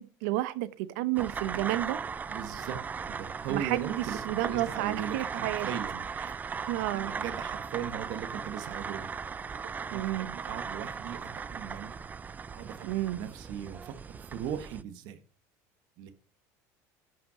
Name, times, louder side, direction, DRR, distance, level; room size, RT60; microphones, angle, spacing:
voice 1, 0.0-2.0 3.5-5.7 6.7-7.1 9.6-10.3 12.8-13.2, right 16 dB, 85° right, 0.9 m, -31 dB
sound 1, 1.1-14.8, right 6 dB, 20° right, 0.5 m, -38 dB
voice 2, 2.3-2.8 3.1-6.1 6.9-9.1 9.9-12.0 12.5-12.9 13.1-15.2 16.0-16.1, right 9 dB, 65° right, 1.4 m, -38 dB
11.5 x 5.8 x 4.9 m
cardioid pair, 130°, 8 cm